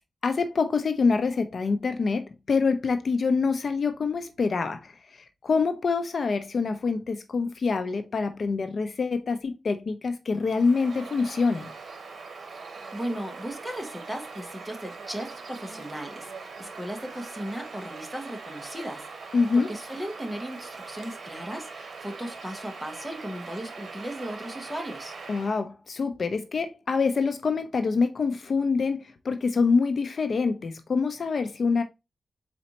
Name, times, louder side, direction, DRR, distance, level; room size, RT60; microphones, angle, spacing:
voice 1, 0.2-4.9 5.4-11.7 19.3-19.7 25.3-31.8, left 4 dB, 55° left, 0.5 m, -25 dB
Bird vocalization bird call bird song, 10.3-25.6, right 4 dB, 75° right, 1.1 m, -42 dB
voice 2, 12.9-19.1 19.5-25.1, equal, 5° right, 1.0 m, -36 dB
4.2 x 4.1 x 2.8 m
wide cardioid pair, 140°, 0 cm